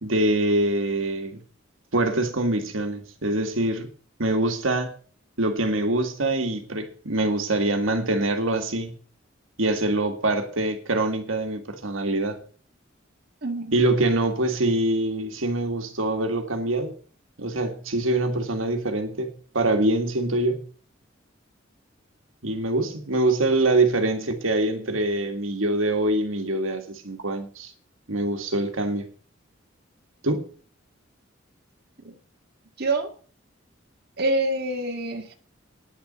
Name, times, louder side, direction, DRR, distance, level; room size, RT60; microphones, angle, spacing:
voice 1, 0.0-1.4 1.9-3.9 4.2-4.9 5.4-8.9 9.6-12.4 13.7-16.9 17.4-20.7 22.4-27.7 28.1-29.1 30.2-30.4, right 2 dB, 85° right, 2.0 m, -24 dB
voice 2, 13.4-13.7 32.0-32.1 32.8-33.1 34.2-35.3, right 2 dB, 55° right, 1.9 m, -26 dB
10.0 x 7.0 x 8.9 m
head